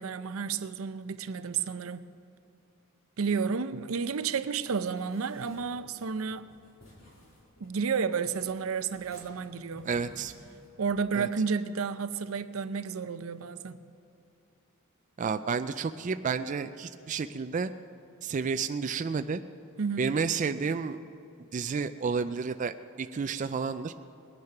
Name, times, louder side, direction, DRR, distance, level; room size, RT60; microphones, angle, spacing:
voice 1, 0.0-2.1 3.2-6.5 7.6-9.9 10.8-13.8 19.8-20.2, right 5 dB, 80° right, 0.6 m, -31 dB
sound 1, 5.0-11.1, left 1 dB, 70° left, 3.4 m, -55 dB
voice 2, 9.9-10.3 11.2-11.3 15.2-17.7 18.2-19.4 20.0-21.0 21.5-23.9, right 5 dB, 35° right, 0.3 m, -31 dB
20.5 x 9.5 x 5.9 m
head